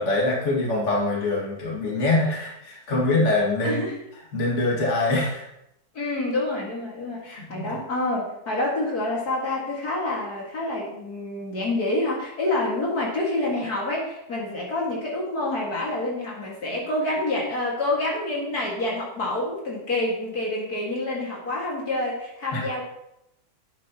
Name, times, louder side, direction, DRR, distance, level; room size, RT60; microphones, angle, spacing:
voice 1, 0.0-3.9 4.3-5.4 7.2-7.8 22.5-22.6, left 2 dB, 45° left, -4 dB, 2.3 m, -24 dB
voice 2, 3.6-3.9 5.9-22.8, left 2 dB, 60° left, -3 dB, 2.5 m, -27 dB
11.0 x 8.7 x 3.0 m, 0.83 s
omnidirectional pair, 1.8 m